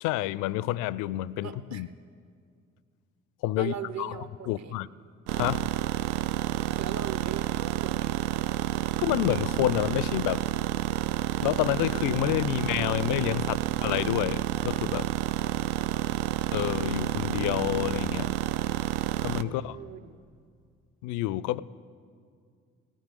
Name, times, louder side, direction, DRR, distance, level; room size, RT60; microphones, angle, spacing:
voice 1, 0.0-1.9 3.4-4.1 4.5-4.9 5.4-5.7 9.0-10.4 11.4-15.1 16.5-18.3 19.2-19.8 21.0-21.6, left 15 dB, 55° left, 21 dB, 0.4 m, -29 dB
voice 2, 1.4-1.8 3.6-4.8 6.6-8.2 19.4-20.2, right 8 dB, 45° right, 10 dB, 0.9 m, -40 dB
sound 1, 5.3-19.4, right 12 dB, 70° right, 0.5 m, -29 dB
17.5 x 6.3 x 8.3 m, 2.2 s
figure-of-eight pair, 40°, 37 cm